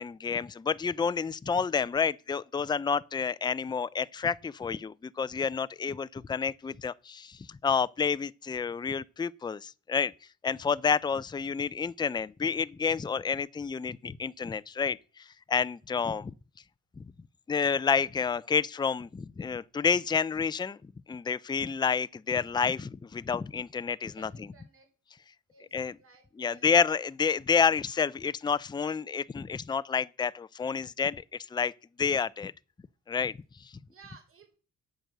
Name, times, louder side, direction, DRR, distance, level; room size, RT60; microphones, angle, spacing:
voice 1, 0.0-10.1 10.4-16.3 17.5-20.8 21.1-24.3 25.7-25.9 26.4-31.2 31.5-31.7 32.0-32.5 33.1-33.7, left 6 dB, 15° left, 0.4 m, -29 dB
voice 2, 24.0-24.9 25.5-26.7 33.9-34.6, right 5 dB, 45° right, 4.1 m, -57 dB
8.8 x 7.9 x 6.7 m
cardioid pair, 90°, 30 cm